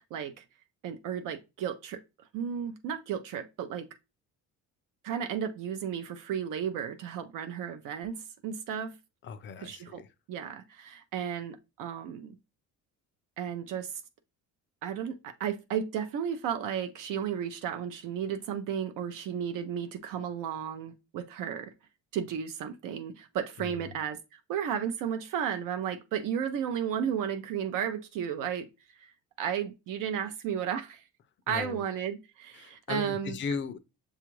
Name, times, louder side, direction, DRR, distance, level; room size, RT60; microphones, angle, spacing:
voice 1, 0.1-0.4 0.8-2.0 2.3-3.9 5.0-8.9 9.6-10.0 10.3-12.4 13.4-13.9 14.8-21.7 22.1-28.7 29.0-29.1 29.4-31.0 31.5-33.4, right 8 dB, 75° right, 0.6 m, -33 dB
voice 2, 9.2-10.1 23.6-24.0 31.5-31.9 32.5-33.8, left 5 dB, 35° left, 0.4 m, -37 dB
6.7 x 2.4 x 3.0 m
cardioid pair, 170°, 33 cm